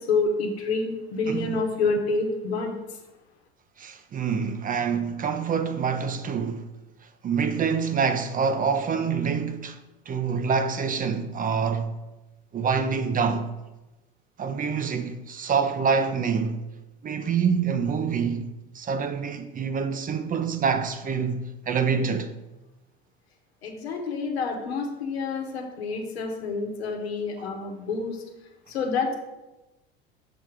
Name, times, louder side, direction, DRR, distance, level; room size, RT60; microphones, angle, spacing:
voice 1, 0.1-2.7 23.6-28.2 28.7-29.1, left 4 dB, 85° left, 1.1 m, -28 dB
voice 2, 1.3-1.6 3.8-6.7 7.2-9.8 10.1-12.0 12.5-13.5 14.4-16.6 17.0-18.5 18.7-22.3, right 6 dB, 25° right, 0.6 m, -26 dB
6.9 x 3.6 x 4.6 m
hypercardioid pair, 80°, 31 cm